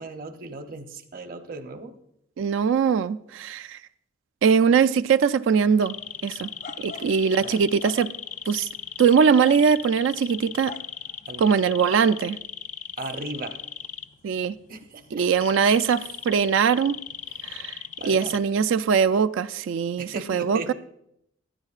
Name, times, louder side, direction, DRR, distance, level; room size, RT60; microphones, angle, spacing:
voice 1, 0.0-2.0 6.9-7.1 7.4-7.7 11.3-11.6 13.0-13.6 14.7-15.3 17.3-17.7 18.0-18.7 20.0-20.7, right 2 dB, 45° right, 0.7 m, -37 dB
voice 2, 2.4-3.8 4.4-5.9 6.2-6.5 6.8-8.1 8.5-8.7 9.0-10.8 11.4-12.4 14.2-14.6 15.1-17.0 17.5-17.8 18.0-20.7, right 6 dB, 70° right, 0.3 m, -21 dB
sound 1, 5.8-18.4, left 7 dB, 35° left, 0.4 m, -38 dB
15.0 x 9.8 x 2.4 m
head